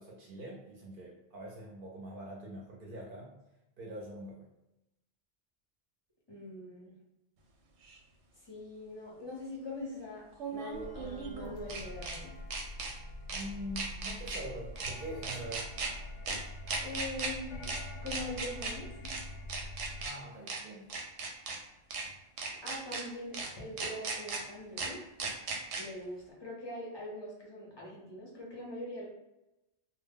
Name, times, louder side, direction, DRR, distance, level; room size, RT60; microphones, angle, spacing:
voice 1, 0.0-3.3 3.8-4.5 13.3-15.7 20.0-20.9, right 1 dB, 60° right, -2 dB, 0.6 m, -44 dB
voice 2, 6.3-6.9 8.5-10.2 10.5-12.3 16.8-17.7 18.0-19.2 22.6-25.0 25.8-29.1, left 1 dB, 30° left, -4 dB, 0.5 m, -42 dB
sound 1, 7.9-8.0 10.3-12.2 12.5-12.9 13.3-13.4 13.8-14.4 14.8-14.9 15.2-15.9 16.3-16.4 16.7-17.3 17.6-17.8 18.1-18.7 19.0-19.2 19.5-20.1 20.5-20.6 20.9-21.6 21.9-22.0 22.4-23.0 23.3-23.5 23.8-24.4 24.8-24.9 25.2-25.8, right 4 dB, 90° right, 0.9 m, -36 dB
sound 2, 10.7-20.1, left 1 dB, 90° left, 0.9 m, -45 dB
2.1 x 2.0 x 3.4 m, 0.92 s
omnidirectional pair, 1.2 m